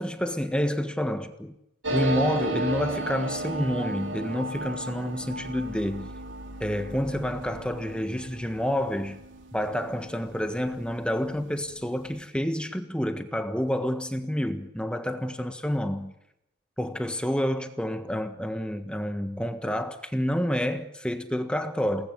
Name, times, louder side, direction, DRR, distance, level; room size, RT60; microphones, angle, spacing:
voice 1, 0.0-1.5 1.9-6.1 6.6-9.2 9.5-16.1 16.8-22.1, equal, 5° left, 1.5 m, -29 dB
sound 1, 1.8-11.0 11.3-11.4 11.6-12.2, right 1 dB, 75° right, 3.4 m, -34 dB
29.0 x 19.5 x 9.6 m
head